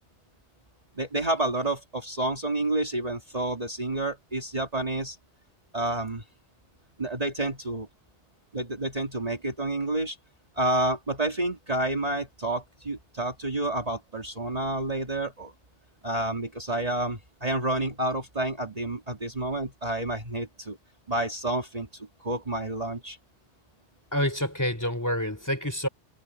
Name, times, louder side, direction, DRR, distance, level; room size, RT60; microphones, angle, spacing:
voice 1, 1.0-5.2 5.7-6.2 7.0-7.9 8.5-10.2 10.6-15.5 16.0-20.8 21.1-23.2, right 2 dB, 35° right, 2.4 m, -29 dB
voice 2, 24.1-25.9, equal, 15° left, 3.8 m, -27 dB
omnidirectional pair, 1.1 m